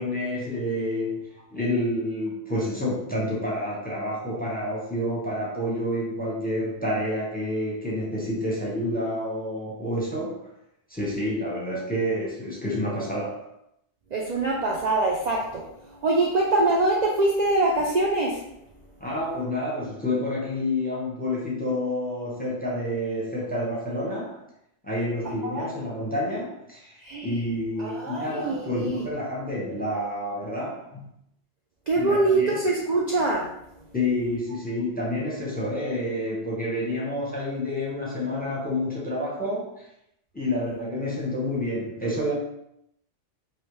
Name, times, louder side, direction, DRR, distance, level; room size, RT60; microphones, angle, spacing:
voice 1, 0.0-10.5 10.9-13.5 19.0-24.4 24.8-31.0 32.0-32.6 33.9-39.9 40.3-42.3, left 1 dB, 10° left, -5 dB, 0.7 m, -29 dB
voice 2, 14.1-15.6 16.0-18.4 25.4-25.7 27.0-27.4 27.8-29.0 31.9-33.5, right 2 dB, 70° right, -3 dB, 0.4 m, -24 dB
3.2 x 2.7 x 3.0 m, 0.78 s
omnidirectional pair, 1.2 m